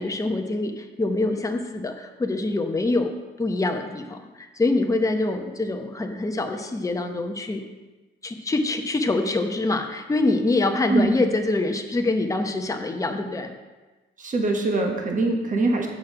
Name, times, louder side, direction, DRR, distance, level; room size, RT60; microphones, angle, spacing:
voice 1, 0.0-3.1 3.4-7.6 8.2-13.5, left 2 dB, 15° left, 4 dB, 0.8 m, -25 dB
voice 2, 14.2-15.9, right 2 dB, 40° right, 2 dB, 1.4 m, -23 dB
7.1 x 6.1 x 4.8 m, 1.2 s
cardioid pair, 90°, 20 cm